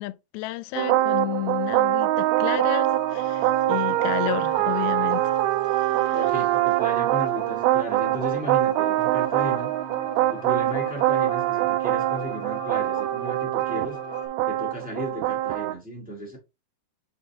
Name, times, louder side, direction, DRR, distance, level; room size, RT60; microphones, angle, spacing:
voice 1, 0.0-5.3 5.7-6.3, left 17 dB, 85° left, 2.4 m, -32 dB
sound 1, 0.8-15.7, right 15 dB, 85° right, 2.5 m, -24 dB
sound 2, 2.3-14.3, left 5 dB, 40° left, 2.6 m, -43 dB
voice 2, 6.1-9.7 10.3-14.0 14.4-16.4, equal, 5° right, 1.5 m, -35 dB
6.5 x 4.1 x 3.6 m
omnidirectional pair, 4.3 m